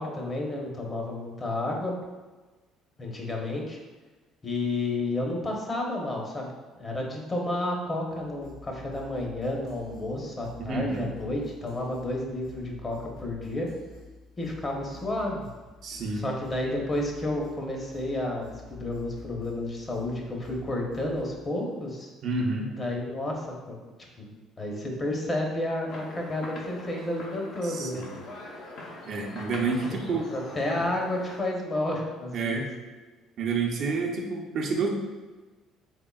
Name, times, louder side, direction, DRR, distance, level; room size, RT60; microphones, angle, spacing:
voice 1, 0.0-1.9 3.0-3.8 4.4-13.7 14.4-15.5 16.1-22.1 22.7-23.8 24.2-24.3 24.6-28.1 30.1-32.7, left 1 dB, 30° left, 0 dB, 0.8 m, -31 dB
sound 1, 8.1-21.4, left 4 dB, 80° left, 1.2 m, -49 dB
voice 2, 10.7-11.1 15.8-16.2 22.2-22.7 27.6-28.2 29.1-30.3 32.3-32.7 33.4-34.9, right 4 dB, 60° right, 0 dB, 0.6 m, -29 dB
sound 2, 25.9-31.4, left 2 dB, 65° left, 0.8 m, -43 dB
3.6 x 3.5 x 2.3 m, 1.3 s
supercardioid pair, 75°, 0 cm